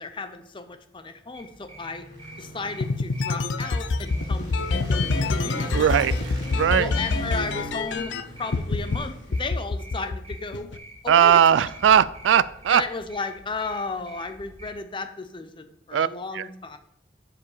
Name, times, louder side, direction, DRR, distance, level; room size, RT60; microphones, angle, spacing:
voice 1, 0.0-2.1 2.4-6.1 6.8-8.1 8.4-10.7 11.0-11.4 12.7-16.8, left 3 dB, 25° left, 9 dB, 0.6 m, -34 dB
sound 1, 1.3-14.7, equal, 35° right, 1.9 m, -47 dB
sound 2, 1.4-9.9, equal, 50° left, 2.7 m, -39 dB
sound 3, 2.8-8.2 8.5-9.0 9.3-10.8, left 3 dB, 90° left, 0.6 m, -25 dB
voice 2, 5.7-6.9 11.1-12.8 15.9-16.1 16.3-16.5, right 8 dB, 85° right, 18 dB, 0.3 m, -19 dB
7.1 x 5.0 x 4.8 m, 0.74 s
head